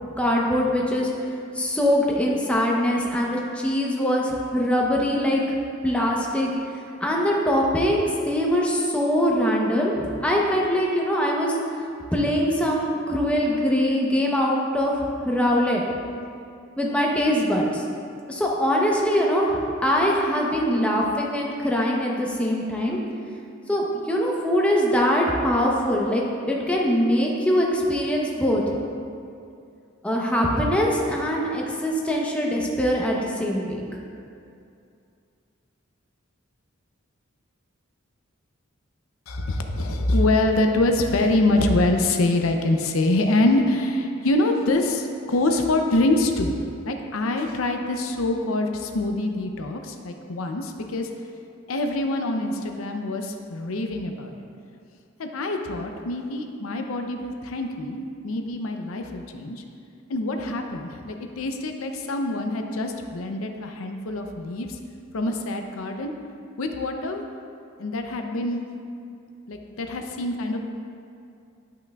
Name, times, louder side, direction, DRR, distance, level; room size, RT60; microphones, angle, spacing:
voice 1, 0.2-1.1 1.5-5.6 5.8-6.5 7.0-15.0 15.2-15.8 16.8-17.8 18.3-23.0 23.7-28.6 30.0-33.8, equal, 5° left, -3 dB, 0.8 m, -23 dB
voice 2, 39.3-46.6 46.8-51.1 51.7-54.5 55.2-59.6 60.1-64.8 65.1-66.1 66.6-67.2 67.8-68.6 69.5-70.6, left 2 dB, 80° left, 4 dB, 0.6 m, -25 dB
11.0 x 5.7 x 2.3 m, 2.5 s
head